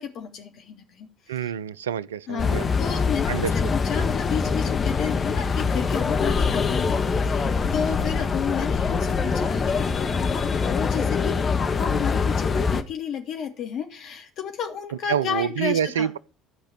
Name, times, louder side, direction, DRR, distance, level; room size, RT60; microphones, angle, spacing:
voice 1, 0.0-1.5 2.3-16.1, left 7 dB, 55° left, 3.3 m, -32 dB
voice 2, 1.3-2.7 3.3-3.5 15.1-16.2, right 9 dB, 80° right, 0.6 m, -26 dB
sound 1, 2.4-12.8, left 5 dB, 30° left, 1.6 m, -24 dB
13.0 x 5.4 x 9.4 m
hypercardioid pair, 60°, 0 cm